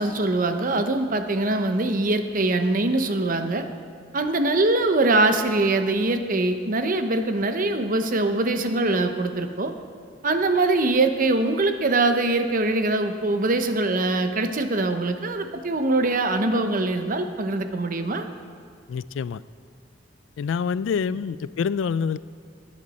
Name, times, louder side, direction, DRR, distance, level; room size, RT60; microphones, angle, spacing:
voice 1, 0.0-3.6 4.1-9.7 10.2-18.2, right 2 dB, 45° right, 7 dB, 0.8 m, -23 dB
voice 2, 18.9-19.4 20.4-22.2, left 6 dB, 80° left, 17 dB, 0.3 m, -26 dB
17.0 x 9.9 x 4.2 m, 2.1 s
head